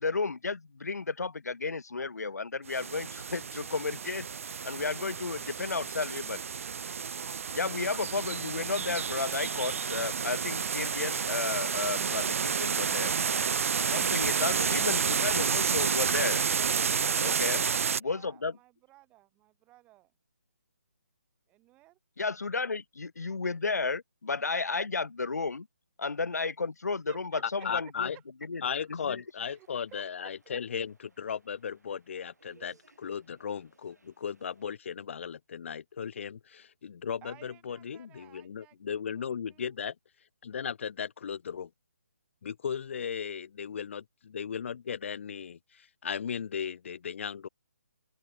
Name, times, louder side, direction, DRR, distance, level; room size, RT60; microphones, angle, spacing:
voice 1, 0.0-4.3 4.6-6.4 7.5-13.1 13.9-16.4 17.2-17.6 18.0-18.6 22.2-25.7 26.0-28.1 28.4-28.6 28.9-29.2, left 4 dB, 85° left, 0.8 m, -33 dB
sound 1, 2.7-18.0, right 6 dB, 55° right, 0.4 m, -30 dB
voice 2, 17.5-20.1 21.5-22.0 27.1-28.2 29.5-30.6 32.6-32.8 37.2-39.8 40.5-40.6, right 18 dB, 15° right, 0.8 m, -56 dB
voice 3, 27.6-28.2 28.6-39.9 40.4-41.7 42.4-47.5, left 7 dB, 50° left, 0.6 m, -36 dB
sound 2, 29.3-34.8, right 3 dB, 90° right, 6.2 m, -66 dB
open air
figure-of-eight pair, 155°, 9 cm